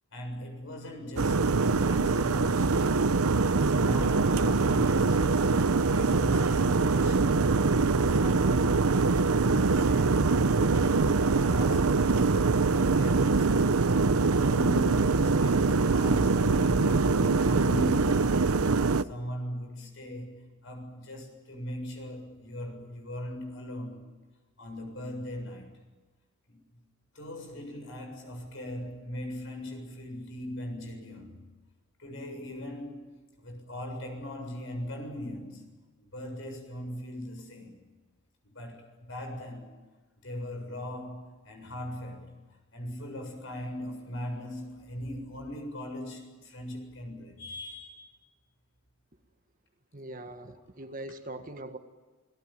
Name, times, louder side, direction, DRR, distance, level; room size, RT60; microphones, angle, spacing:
voice 1, 0.1-3.0 3.5-7.4 8.1-9.0 9.3-13.9 14.3-18.5 19.0-24.0 24.6-25.7 26.5-26.6 27.1-31.4 32.0-35.7 36.0-37.8 38.4-39.8 40.2-48.3, equal, 60° left, 4 dB, 7.4 m, -39 dB
sound 1, 1.2-19.0, right 4 dB, 85° right, 0.8 m, -24 dB
voice 2, 49.9-51.8, right 1 dB, 40° right, 6 dB, 1.8 m, -41 dB
29.0 x 18.0 x 9.1 m, 1.3 s
head